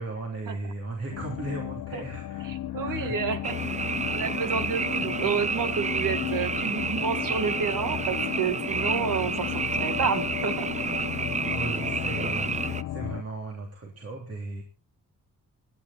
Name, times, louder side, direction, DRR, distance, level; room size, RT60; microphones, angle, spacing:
voice 1, 0.0-3.2 5.0-5.2 11.5-14.6, right 2 dB, 50° right, 1 dB, 3.2 m, -37 dB
sound 1, 1.1-13.2, left 12 dB, 80° left, 0.7 m, -34 dB
voice 2, 2.5-3.6 4.1-9.5 9.8-10.7, right 6 dB, 80° right, 9 dB, 2.2 m, -30 dB
Frog, 3.4-12.8, right 4 dB, 20° right, 0.7 m, -30 dB
23.5 x 10.0 x 4.3 m, 0.34 s
cardioid pair, 115°, 32 cm